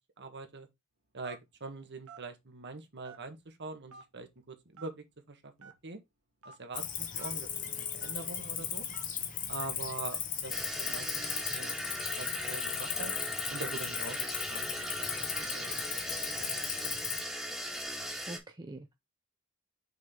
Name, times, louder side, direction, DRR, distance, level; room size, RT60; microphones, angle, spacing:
voice 1, 0.2-0.7 1.1-6.0 6.4-8.9 9.5-11.1 11.5-11.8 12.2-13.1 13.5-14.2 14.5-14.6 15.0-17.0, right 3 dB, 55° right, 1.5 m, -44 dB
Telephone, 1.2-1.5 2.1-2.2 3.0-3.4 3.9-4.0 4.7-4.9 5.6-5.7 6.4-6.5 7.2-7.3 8.0-8.2 8.9-9.1, right 5 dB, 75° right, 1.4 m, -50 dB
Cricket, 6.7-17.2, left 8 dB, 40° left, 1.3 m, -37 dB
sound 1, 10.5-18.4, equal, ahead, 1.8 m, -38 dB
voice 2, 18.0-18.9, right 2 dB, 20° right, 0.6 m, -46 dB
6.3 x 5.1 x 3.7 m
head